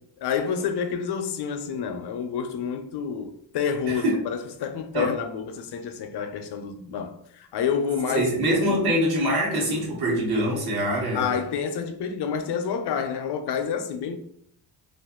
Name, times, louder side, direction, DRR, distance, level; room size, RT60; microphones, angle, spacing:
voice 1, 0.2-8.8 11.1-14.2, left 7 dB, 60° left, 0.6 m, -29 dB
voice 2, 3.9-4.2 4.9-5.1 8.1-11.3, equal, 55° right, 1.2 m, -24 dB
2.5 x 2.5 x 3.6 m
cardioid pair, 105°, 46 cm